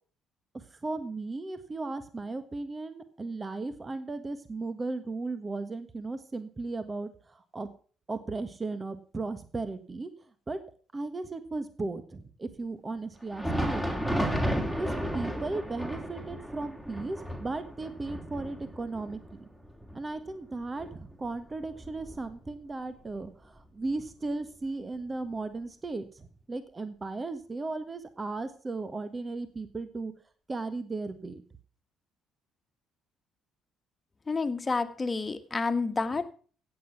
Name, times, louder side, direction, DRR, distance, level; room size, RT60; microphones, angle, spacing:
voice 1, 0.5-7.7 8.1-10.1 10.5-10.6 10.9-14.2 14.7-19.2 19.9-30.1 30.5-31.4, right 3 dB, 30° right, 11 dB, 1.5 m, -36 dB
Thunder, 13.2-22.7 23.0-23.2 23.9-24.0 25.0-25.1, equal, 5° right, 3.6 m, -34 dB
voice 2, 34.3-36.3, left 4 dB, 25° left, 10 dB, 1.7 m, -29 dB
16.0 x 8.1 x 5.9 m, 0.41 s
hypercardioid pair, 50°, 0 cm